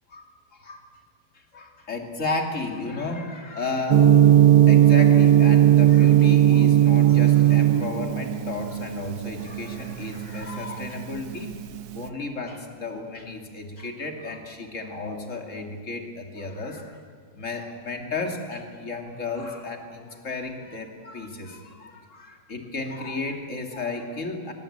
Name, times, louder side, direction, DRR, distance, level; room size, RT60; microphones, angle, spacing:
voice 1, 0.5-0.9 1.5-4.1 4.7-11.5 11.9-17.0 17.3-24.5, left 3 dB, 35° left, 4 dB, 2.9 m, -33 dB
Gong, 3.9-12.0, right 11 dB, 55° right, 1.3 m, -17 dB
22.5 x 22.0 x 8.7 m, 2.1 s
omnidirectional pair, 2.3 m